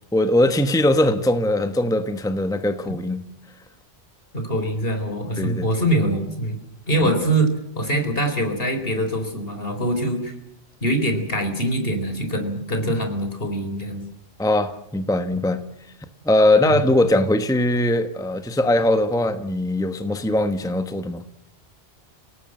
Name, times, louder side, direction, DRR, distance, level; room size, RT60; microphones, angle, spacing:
voice 1, 0.1-3.3 5.4-5.7 7.0-7.1 14.4-15.6 16.2-21.2, left 1 dB, 5° left, 1.1 m, -20 dB
voice 2, 4.3-6.6 6.9-10.3 10.8-14.0 16.6-16.8, right 1 dB, 60° left, 4.3 m, -23 dB
29.5 x 18.5 x 7.8 m
omnidirectional pair, 1.1 m